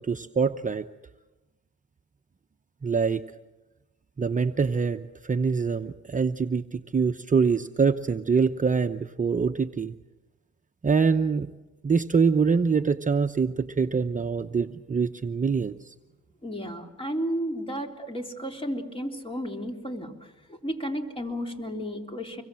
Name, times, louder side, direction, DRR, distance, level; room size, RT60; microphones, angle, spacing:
voice 1, 0.1-0.9 2.8-3.2 4.2-9.9 10.8-11.5 11.8-15.9, right 5 dB, 25° right, 7 dB, 0.8 m, -24 dB
voice 2, 16.4-22.4, equal, 20° left, 3 dB, 3.6 m, -33 dB
25.5 x 22.5 x 7.6 m, 1.1 s
cardioid pair, 90°, 30 cm